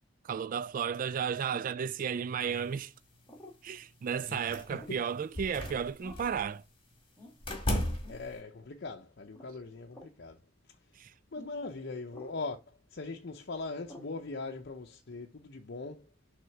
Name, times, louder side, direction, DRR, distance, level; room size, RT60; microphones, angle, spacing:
voice 1, 0.2-2.9 3.6-6.6 11.0-11.1, right 7 dB, 45° right, 0.3 m, -33 dB
sound 1, 1.5-1.9 3.3-3.6 4.7-5.0 6.0-6.4 7.2-7.4 8.0-8.2 9.3-9.5 9.9-10.2 11.3-11.5 12.1-12.4 13.9-14.2, left 1 dB, 15° left, 1.8 m, -51 dB
voice 2, 4.2-5.0 8.1-10.4 11.3-16.0, left 3 dB, 60° left, 0.7 m, -41 dB
sound 2, 4.5-4.9 5.3-6.4 7.4-8.4, left 1 dB, 30° left, 1.8 m, -35 dB
6.2 x 3.6 x 5.8 m
head